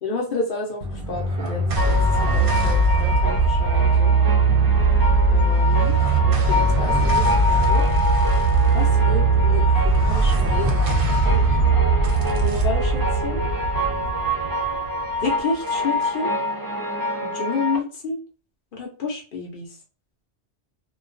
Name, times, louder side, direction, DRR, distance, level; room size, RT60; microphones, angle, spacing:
voice 1, 0.0-4.2 5.3-6.0 6.2-7.8 8.7-11.3 12.4-13.4 15.2-16.3 17.2-18.2 18.7-19.7, left 3 dB, 60° left, 0 dB, 0.8 m, -30 dB
sound 1, 0.8-15.4, right 3 dB, 65° right, 0.7 m, -20 dB
sound 2, 1.8-17.8, left 1 dB, 30° right, 0.4 m, -27 dB
2.3 x 2.3 x 2.4 m, 0.38 s
omnidirectional pair, 1.1 m